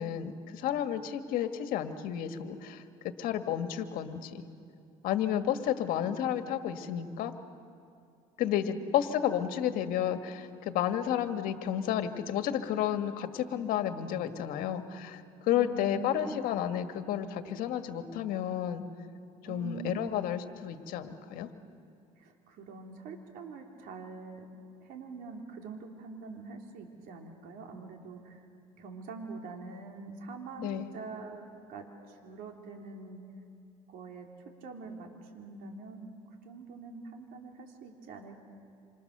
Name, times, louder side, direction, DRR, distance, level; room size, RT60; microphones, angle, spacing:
voice 1, 0.0-2.8 3.2-4.4 5.0-7.3 8.4-18.8 19.4-21.5 30.6-30.9, left 10 dB, 70° left, 8 dB, 1.7 m, -31 dB
voice 2, 15.5-16.3 19.5-20.2 22.2-24.5 24.8-28.5 28.8-31.4 31.7-33.2 33.9-34.3 34.6-36.1 36.4-38.4, right 4 dB, 70° right, 2 dB, 3.6 m, -44 dB
27.5 x 27.0 x 6.8 m, 2.5 s
cardioid pair, 100°, 15 cm